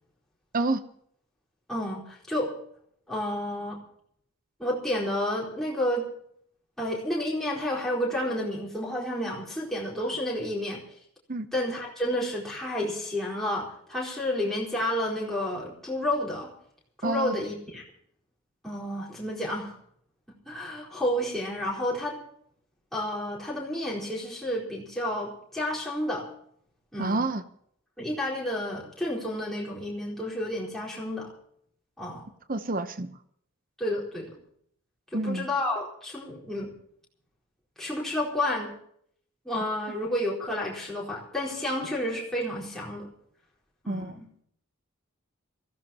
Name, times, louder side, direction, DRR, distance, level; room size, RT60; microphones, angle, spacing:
voice 1, 1.7-2.5 3.1-3.8 4.6-6.1 6.8-10.8 11.5-16.5 17.0-17.8 18.6-19.7 20.5-22.2 22.9-26.3 26.9-27.2 28.0-31.3 32.0-32.3 33.8-34.4 35.1-36.7 37.8-38.7 39.4-43.1 43.8-44.3, left 1 dB, ahead, -5 dB, 4.3 m, -30 dB
voice 2, 17.0-17.4 27.0-27.4 32.5-33.1 35.1-35.5 43.9-44.2, right 2 dB, 40° right, 11 dB, 0.8 m, -28 dB
23.5 x 15.5 x 3.0 m, 0.67 s
head